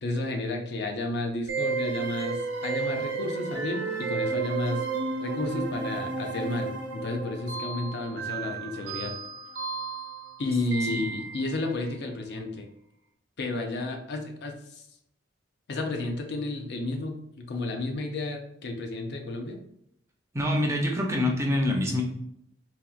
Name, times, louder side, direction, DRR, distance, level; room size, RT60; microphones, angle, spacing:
voice 1, 0.0-4.8 5.2-9.1 10.4-12.7 13.4-14.8 15.7-19.6, left 2 dB, 65° left, 3 dB, 0.5 m, -32 dB
sound 1, 1.5-11.6, right 4 dB, 80° right, 0.7 m, -32 dB
voice 2, 20.3-22.0, left 1 dB, 15° right, 0 dB, 0.5 m, -26 dB
4.2 x 2.3 x 2.4 m, 0.74 s
head